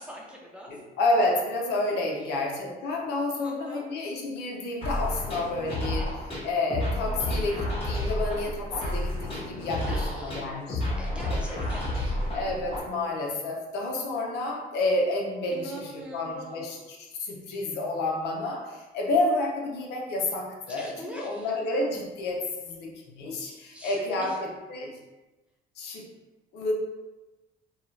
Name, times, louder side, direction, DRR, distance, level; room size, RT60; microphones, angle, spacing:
voice 1, 0.0-0.7 3.4-3.9 9.8-10.5 11.0-12.4 15.5-16.8 20.7-21.5 23.4-24.3, equal, 5° right, -2 dB, 0.5 m, -42 dB
voice 2, 0.7-11.4 12.3-16.8 17.2-25.0 25.8-26.0 26.5-26.7, left 2 dB, 75° left, 0 dB, 0.6 m, -30 dB
sound 1, 4.8-12.8, left 1 dB, 35° left, 1.2 m, -30 dB
2.7 x 2.3 x 3.1 m, 1.1 s
cardioid pair, 110°, 17 cm